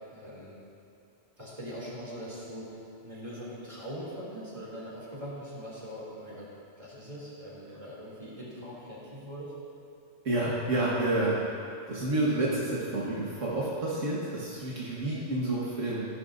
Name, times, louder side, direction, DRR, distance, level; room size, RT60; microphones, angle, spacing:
voice 1, 0.1-0.6 1.4-2.7 3.0-6.5 6.8-9.6, equal, 25° right, -7 dB, 2.9 m, -41 dB
voice 2, 10.3-11.4 11.9-16.0, right 2 dB, 85° right, -7 dB, 1.8 m, -29 dB
14.5 x 11.0 x 2.6 m, 2.5 s
omnidirectional pair, 1.3 m